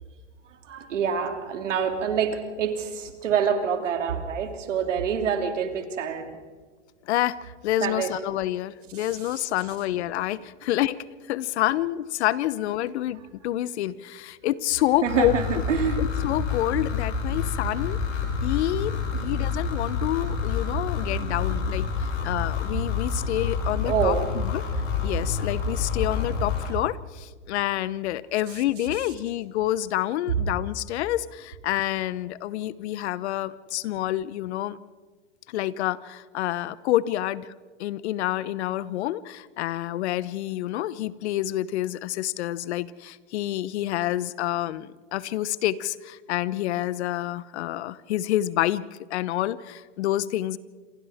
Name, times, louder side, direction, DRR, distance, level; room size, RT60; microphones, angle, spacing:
voice 1, 0.5-6.4 7.8-8.1 8.9-9.4 15.0-16.0 20.9-21.5 23.9-24.3 28.5-28.6, right 7 dB, 80° right, 5 dB, 3.0 m, -27 dB
voice 2, 7.1-15.3 16.0-18.0 18.4-21.9 22.2-24.1 24.4-24.6 25.0-34.8 35.5-37.5 37.8-48.8 49.1-50.6, left 14 dB, 65° left, 18 dB, 1.0 m, -28 dB
sound 1, 15.1-26.7, left 5 dB, 85° left, 6.5 m, -28 dB
28.0 x 26.5 x 3.7 m, 1.4 s
hypercardioid pair, 115°, 36 cm